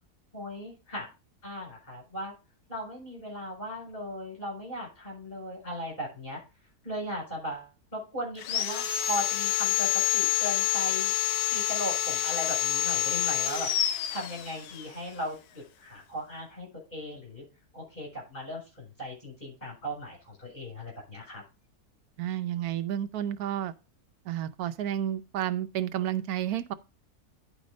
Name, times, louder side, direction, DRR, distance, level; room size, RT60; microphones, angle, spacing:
voice 1, 0.3-1.1 1.4-2.3 2.7-6.4 6.8-11.1 11.5-13.7 14.1-17.4 17.7-21.4, equal, 30° left, 7.1 m, -37 dB
Sawing, 8.4-14.9, left 13 dB, 85° left, 1.3 m, -28 dB
voice 2, 22.2-23.7 24.3-26.7, right 11 dB, 80° right, 1.1 m, -31 dB
10.0 x 5.0 x 5.2 m
omnidirectional pair, 1.6 m